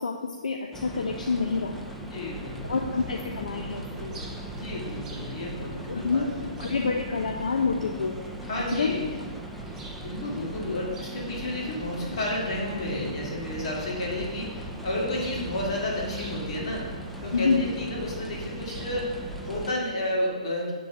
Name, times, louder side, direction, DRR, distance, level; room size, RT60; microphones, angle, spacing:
voice 1, 0.0-1.8 2.6-4.3 5.9-6.3 6.6-8.2 8.7-8.9 10.6-10.8 17.3-17.7, left 4 dB, 80° left, 3 dB, 0.5 m, -28 dB
sound 1, 0.7-19.7, right 1 dB, 5° left, 0.6 m, -39 dB
voice 2, 2.0-2.9 4.5-6.5 8.4-9.0 9.9-16.8 17.2-20.7, left 1 dB, 50° left, -3 dB, 2.4 m, -32 dB
sound 2, 2.3-19.7, right 2 dB, 15° right, 1.6 m, -43 dB
7.0 x 3.8 x 6.1 m, 1.4 s
hypercardioid pair, 135°, 4 cm